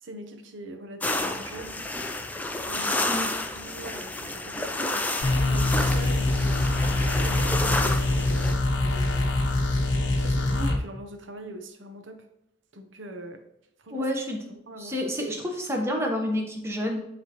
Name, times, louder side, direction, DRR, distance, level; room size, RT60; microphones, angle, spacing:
voice 1, 0.0-1.8 2.7-5.1 5.5-9.3 10.1-12.3 12.7-13.4 13.8-14.1 14.5-15.1, right 1 dB, 75° right, 6 dB, 0.8 m, -42 dB
sound 1, 1.0-8.5, left 2 dB, 10° left, 0.3 m, -30 dB
sound 2, 5.2-10.8, left 2 dB, 70° left, 0.8 m, -24 dB
voice 2, 13.9-14.4 14.8-17.0, left 1 dB, 15° right, 1 dB, 0.9 m, -29 dB
9.5 x 3.4 x 2.9 m, 0.82 s
head